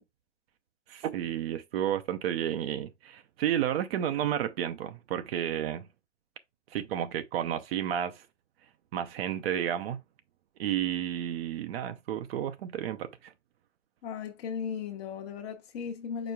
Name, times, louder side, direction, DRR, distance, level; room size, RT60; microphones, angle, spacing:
voice 1, 0.9-5.9 6.7-8.3 8.9-10.0 10.6-13.3, right 10 dB, 55° right, 0.6 m, -31 dB
voice 2, 14.0-16.3, left 7 dB, 60° left, 1.0 m, -36 dB
5.0 x 4.4 x 2.3 m
figure-of-eight pair, 100°, 35 cm